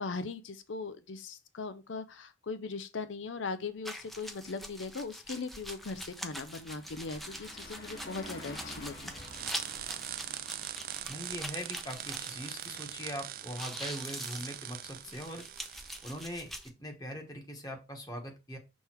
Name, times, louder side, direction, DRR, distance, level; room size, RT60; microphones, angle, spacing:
voice 1, 0.0-9.1, left 4 dB, 85° left, 0.6 m, -39 dB
Car passing by, 3.7-3.9 4.3-15.3, left 1 dB, 50° left, 1.6 m, -52 dB
sound 1, 3.9-13.1 13.4-16.7, equal, ahead, 0.5 m, -44 dB
sound 2, 9.2-16.4, right 11 dB, 50° right, 0.4 m, -42 dB
voice 2, 11.1-15.4 16.0-16.5 16.8-18.6, equal, 20° left, 1.2 m, -41 dB
6.3 x 3.5 x 4.4 m
head